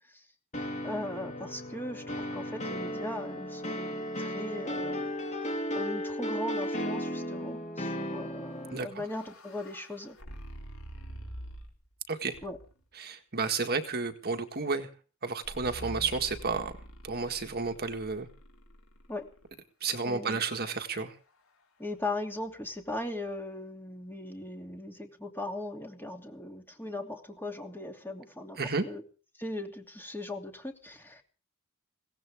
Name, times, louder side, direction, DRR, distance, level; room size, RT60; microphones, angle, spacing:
sound 1, 0.5-8.8, equal, 35° left, 2.9 m, -35 dB
voice 1, 0.8-5.1 5.7-10.2 12.4-12.6 19.1-19.3 20.1-20.4 21.8-29.0 29.4-31.2, left 2 dB, 10° left, 4 dB, 2.9 m, -39 dB
sound 2, 8.5-11.9 12.3-12.9 15.4-19.5, equal, 65° left, 4.4 m, -46 dB
voice 2, 13.0-14.9 15.2-16.8 17.0-18.3 19.8-21.1 28.6-28.8, right 4 dB, 45° right, 6 dB, 1.7 m, -31 dB
23.0 x 17.5 x 3.6 m, 0.38 s
head